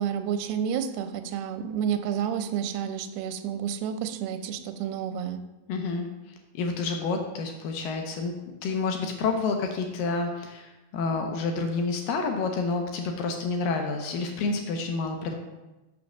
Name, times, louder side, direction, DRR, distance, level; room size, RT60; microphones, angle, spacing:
voice 1, 0.0-5.4, right 8 dB, 90° right, 8 dB, 2.7 m, -30 dB
voice 2, 5.7-15.3, left 4 dB, 75° left, 4 dB, 2.3 m, -29 dB
6.4 x 6.2 x 6.1 m, 1.1 s
omnidirectional pair, 4.5 m